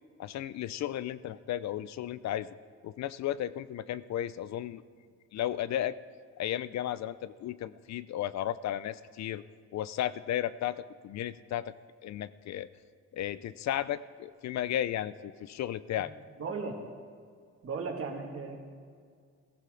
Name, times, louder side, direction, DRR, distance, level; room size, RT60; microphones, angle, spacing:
voice 1, 0.2-2.5 2.8-4.8 5.3-5.9 6.4-9.4 9.7-11.7 12.0-12.7 13.1-16.1, left 12 dB, 65° left, 16 dB, 0.5 m, -34 dB
voice 2, 16.4-16.8 17.6-18.6, right 4 dB, 50° right, 2 dB, 2.3 m, -36 dB
16.5 x 15.0 x 3.9 m, 2.1 s
cardioid pair, 90°, 30 cm